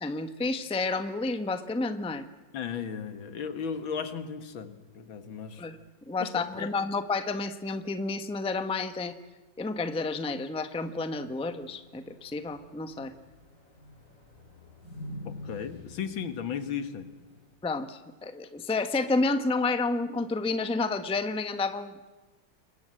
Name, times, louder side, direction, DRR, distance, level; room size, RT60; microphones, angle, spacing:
voice 1, 0.0-2.3 5.6-5.8 6.1-9.1 9.6-13.1 17.6-22.1, left 3 dB, 5° left, 9 dB, 0.7 m, -30 dB
voice 2, 2.5-5.6 6.2-6.7 15.3-17.1, left 7 dB, 80° left, 10 dB, 2.3 m, -35 dB
sound 1, 11.3-17.5, left 2 dB, 40° left, 7.1 m, -47 dB
28.0 x 22.5 x 7.7 m, 1.2 s
omnidirectional pair, 2.1 m